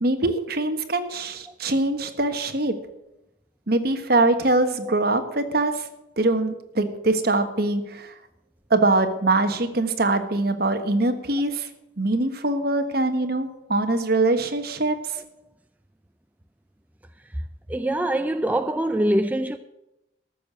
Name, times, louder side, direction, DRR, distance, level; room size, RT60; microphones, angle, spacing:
voice 1, 0.0-2.7 3.7-5.9 6.2-8.1 8.7-11.7 12.0-15.2, right 2 dB, 55° right, 1.4 m, -23 dB
voice 2, 17.7-19.6, right 1 dB, 10° right, 0.4 m, -23 dB
14.0 x 6.7 x 9.1 m
head